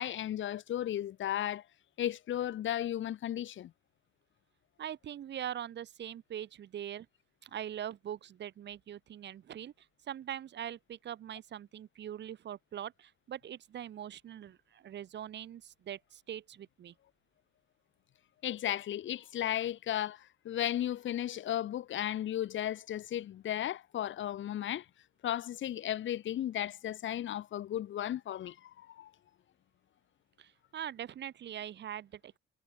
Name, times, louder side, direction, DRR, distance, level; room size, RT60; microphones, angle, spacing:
voice 1, 0.0-1.6 2.0-3.7 18.4-24.8 25.2-29.1, left 11 dB, 65° left, 1.6 m, -35 dB
voice 2, 4.8-7.1 7.4-16.9 30.4-32.4, right 10 dB, 60° right, 1.3 m, -42 dB
cardioid pair, 110°, 21 cm